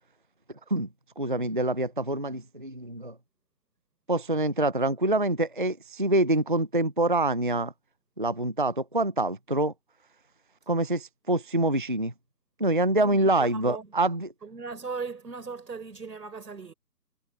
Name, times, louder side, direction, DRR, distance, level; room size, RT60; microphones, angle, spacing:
voice 1, 1.2-3.1 4.1-7.7 8.2-9.7 10.7-12.1 12.6-14.3, right 2 dB, 30° right, 0.5 m, -26 dB
voice 2, 13.0-13.9 14.4-16.7, right 4 dB, 75° right, 5.0 m, -38 dB
hypercardioid pair, 160°, 49 cm